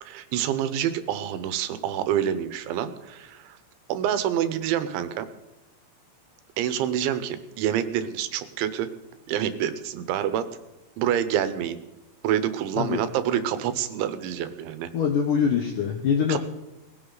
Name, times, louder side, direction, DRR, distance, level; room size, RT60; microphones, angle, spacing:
voice 1, 0.0-3.6 3.9-5.3 6.6-8.9 9.3-10.5 11.0-11.8 12.2-14.9 16.3-16.4, right 10 dB, 85° right, 11 dB, 3.4 m, -27 dB
voice 2, 14.9-16.4, left 7 dB, 80° left, 4 dB, 1.9 m, -24 dB
19.5 x 16.5 x 4.0 m, 0.97 s
omnidirectional pair, 5.2 m